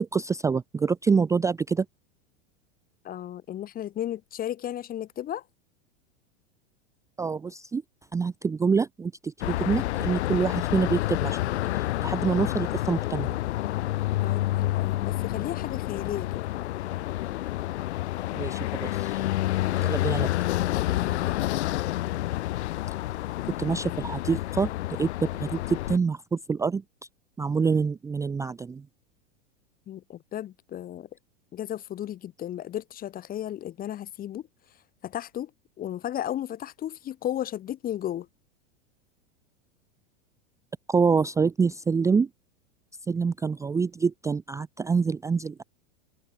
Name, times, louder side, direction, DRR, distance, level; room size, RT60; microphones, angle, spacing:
voice 1, 0.0-1.9 7.2-7.8 8.1-11.4 11.7-13.3 18.3-19.3 19.8-20.3 23.6-26.8 27.4-28.8 40.9-42.3 43.1-45.6, right 5 dB, 10° right, 0.5 m, -26 dB
voice 2, 3.0-5.4 14.2-16.4 20.0-20.2 20.9-21.4 29.9-31.1 31.5-34.5 35.0-35.5 35.8-38.3, left 11 dB, 25° left, 0.9 m, -34 dB
sound 1, 9.4-26.0, left 16 dB, 75° left, 1.4 m, -29 dB
hypercardioid pair, 120°, 34 cm